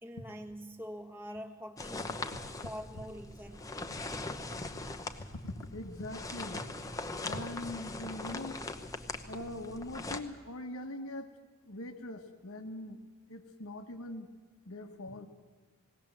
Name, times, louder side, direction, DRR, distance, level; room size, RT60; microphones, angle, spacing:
voice 1, 0.0-2.1 2.6-3.6, equal, 10° right, 3 dB, 1.3 m, -44 dB
sound 1, 1.8-10.2, left 2 dB, 15° left, 0.8 m, -41 dB
voice 2, 5.3-6.6 7.2-8.6 9.3-11.3 11.6-13.0 13.3-14.3 14.7-15.3, left 1 dB, 75° left, 7 dB, 1.3 m, -42 dB
20.0 x 17.5 x 7.5 m, 1.5 s
head